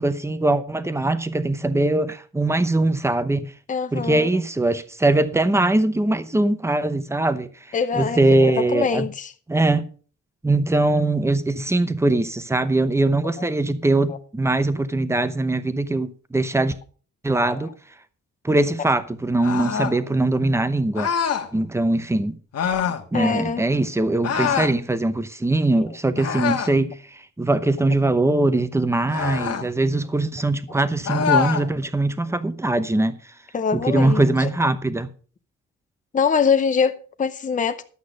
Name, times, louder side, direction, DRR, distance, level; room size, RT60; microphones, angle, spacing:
voice 1, 0.0-3.5 3.9-7.5 7.9-9.1 9.5-9.9 10.4-16.7 17.2-17.7 18.4-21.1 21.5-22.4 23.1-33.1 33.7-35.1, right 2 dB, 10° right, 0.8 m, -21 dB
voice 2, 3.7-4.3 7.7-9.3 10.7-10.8 13.4-13.5 14.1-14.2 17.5-17.7 23.1-23.6 33.5-34.5 36.1-37.8, left 6 dB, 25° left, 0.7 m, -24 dB
sound 1, 19.4-20.0 20.9-21.5 22.5-23.0 24.2-24.8 26.2-26.8 29.1-29.7 31.0-31.7, left 7 dB, 55° left, 1.4 m, -24 dB
12.0 x 8.3 x 5.2 m
wide cardioid pair, 160°, 30 cm